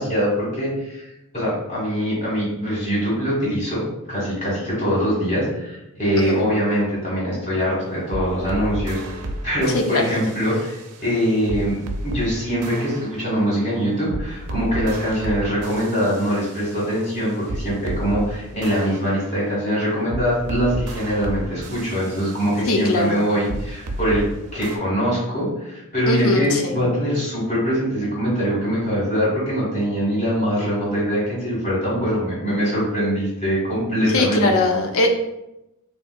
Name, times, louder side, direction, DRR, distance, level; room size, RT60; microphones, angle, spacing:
voice 1, 0.0-24.2 24.5-34.7, equal, 35° left, -7 dB, 1.5 m, -23 dB
sound 1, 7.8-12.3 12.6-18.3 18.6-24.3 24.6-24.8, right 1 dB, 85° right, 0.5 m, -33 dB
voice 2, 22.7-23.2 26.1-26.8 34.1-35.1, left 2 dB, 65° left, 3 dB, 0.4 m, -20 dB
3.3 x 2.7 x 2.2 m, 0.89 s
head